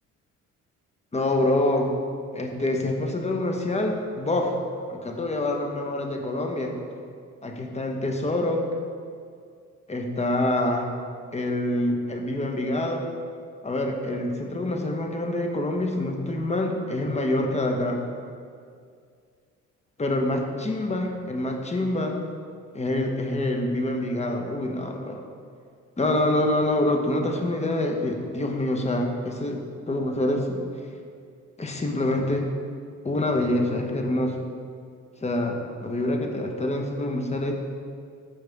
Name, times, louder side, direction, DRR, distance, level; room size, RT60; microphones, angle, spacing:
voice 1, 1.1-1.9 2.3-4.5 4.9-6.7 7.4-8.7 9.9-10.9 11.3-13.1 13.6-18.0 20.0-22.2 22.7-25.2 26.0-30.6 31.6-32.5 33.0-34.3 35.2-37.5, left 1 dB, 20° left, 3 dB, 1.2 m, -26 dB
14.0 x 5.3 x 3.6 m, 2.2 s
cardioid pair, 90°, 30 cm